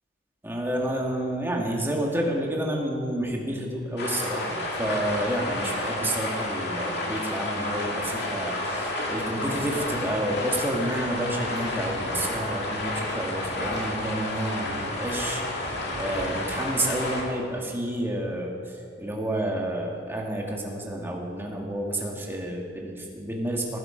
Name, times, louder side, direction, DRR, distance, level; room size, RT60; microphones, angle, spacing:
voice 1, 0.4-23.8, right 1 dB, 10° right, -1 dB, 1.9 m, -30 dB
sound 1, 4.0-17.2, left 1 dB, 55° left, 2.6 m, -31 dB
18.5 x 11.0 x 5.1 m, 2.4 s
head